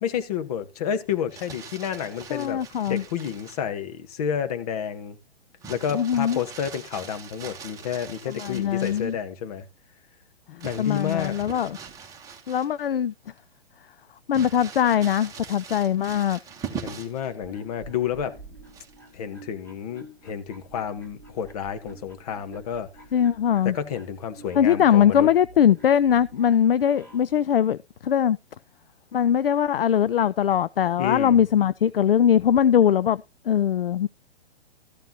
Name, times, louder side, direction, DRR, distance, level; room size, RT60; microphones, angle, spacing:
voice 1, 0.0-2.6 2.9-5.2 5.7-9.7 10.5-11.4 16.8-18.4 19.1-22.9 23.6-25.3 31.0-31.4, left 8 dB, 35° left, 1.3 m, -30 dB
Crumpling crinkling, 1.1-3.7 5.6-9.2 10.6-13.0 13.4-13.5 14.3-17.3 18.7-19.1, right 6 dB, 10° right, 1.4 m, -41 dB
voice 2, 2.3-3.0 5.9-6.4 8.3-9.1 10.8-11.8 12.5-13.1 14.3-16.4 23.1-23.8 24.6-27.8 28.0-28.4 29.1-34.1, left 9 dB, 60° left, 0.4 m, -21 dB
sound 1, 17.2-27.4, right 1 dB, 10° left, 2.1 m, -49 dB
14.0 x 9.1 x 2.9 m
figure-of-eight pair, 120°, 31 cm